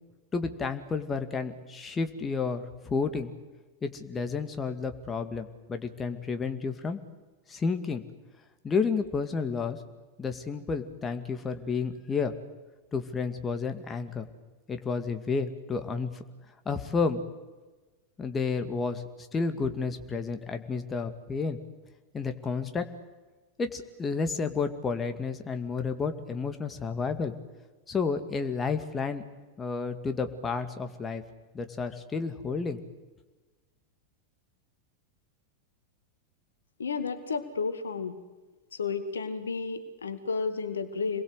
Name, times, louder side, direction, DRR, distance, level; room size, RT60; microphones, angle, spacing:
voice 1, 0.3-3.3 3.8-7.0 7.5-8.0 8.6-9.8 10.2-12.3 12.9-14.3 14.7-16.2 16.7-17.2 18.2-19.0 19.3-21.6 22.1-22.9 23.6-27.3 27.9-29.2 29.6-31.2 31.5-32.8, left 5 dB, 20° left, 7 dB, 2.3 m, -31 dB
voice 2, 36.8-38.2 38.8-41.2, left 5 dB, 70° left, 10 dB, 2.1 m, -32 dB
28.0 x 22.0 x 8.2 m, 1.2 s
figure-of-eight pair, 90°, 0 cm